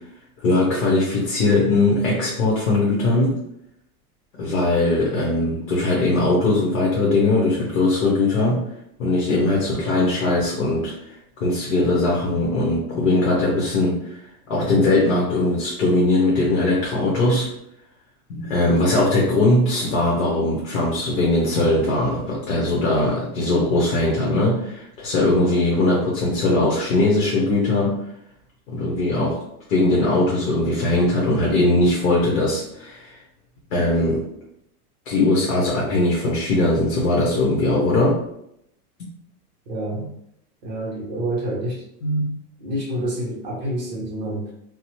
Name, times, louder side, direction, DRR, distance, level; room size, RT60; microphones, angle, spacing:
voice 1, 0.4-3.4 4.4-8.6 9.0-11.1 11.4-14.2 14.5-17.5 18.3-28.0 28.7-29.4 29.7-33.1 33.7-34.2 35.1-38.2 40.0-40.1 42.0-42.4, left 2 dB, 60° left, -4 dB, 0.9 m, -20 dB
voice 2, 39.7-40.0 40.6-41.8 42.6-44.5, right 1 dB, 30° right, -3 dB, 0.5 m, -28 dB
2.9 x 2.0 x 2.9 m, 0.77 s
supercardioid pair, 180°, 47 cm